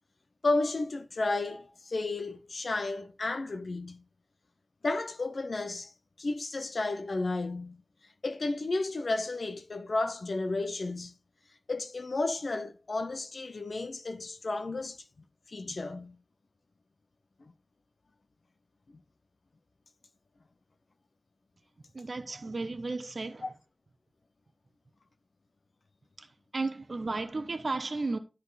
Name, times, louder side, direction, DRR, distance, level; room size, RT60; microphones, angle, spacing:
voice 1, 0.4-4.0 4.8-5.9 6.2-7.8 8.2-11.1 11.7-15.0 15.5-16.2 17.4-17.5 18.9-19.0 23.4-23.5, left 2 dB, 80° left, 0.6 m, -32 dB
voice 2, 21.9-23.5 26.2-28.2, right 3 dB, 70° right, 0.7 m, -34 dB
10.0 x 4.3 x 4.0 m
wide cardioid pair, 45°, 0 cm